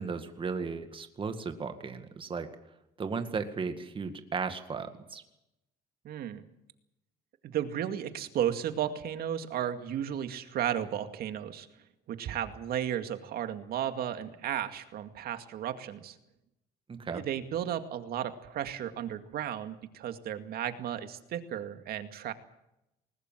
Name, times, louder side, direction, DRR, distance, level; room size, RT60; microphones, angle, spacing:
voice 1, 0.0-2.5 3.0-5.2 16.9-17.2, right 5 dB, 30° right, 7 dB, 2.1 m, -35 dB
voice 2, 6.0-6.4 7.4-11.7 12.1-16.2 17.1-22.3, right 10 dB, 65° right, 8 dB, 2.2 m, -34 dB
20.5 x 20.0 x 7.5 m, 0.88 s
cardioid pair, 110°, 17 cm